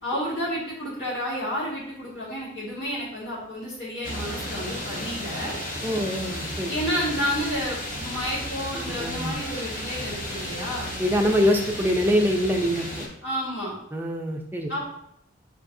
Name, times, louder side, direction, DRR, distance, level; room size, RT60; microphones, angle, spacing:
voice 1, 0.0-5.5 6.6-10.9 13.2-13.7 14.7-14.8, equal, 60° left, -8 dB, 1.7 m, -30 dB
sound 1, 4.0-13.1, equal, 40° left, 0.8 m, -34 dB
voice 2, 5.8-6.7 8.7-9.4 11.0-13.1 13.9-14.7, equal, 10° right, 2 dB, 0.4 m, -24 dB
6.7 x 2.8 x 2.6 m, 0.75 s
head